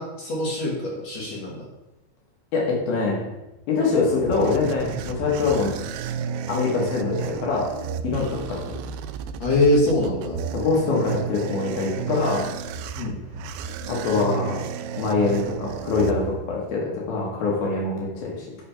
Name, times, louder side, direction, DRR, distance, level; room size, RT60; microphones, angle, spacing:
voice 1, 0.0-1.6 8.1-8.3 9.4-10.4 13.0-13.2, left 1 dB, 55° left, -3 dB, 2.1 m, -23 dB
voice 2, 2.5-3.2 3.7-5.7 6.5-7.7 8.0-8.8 10.5-12.5 13.9-14.6 15.0-18.5, left 4 dB, 70° left, -3 dB, 3.1 m, -24 dB
sound 1, 3.8-16.7, right 7 dB, 85° right, 2.3 m, -32 dB
9.9 x 3.4 x 5.6 m, 0.97 s
omnidirectional pair, 4.5 m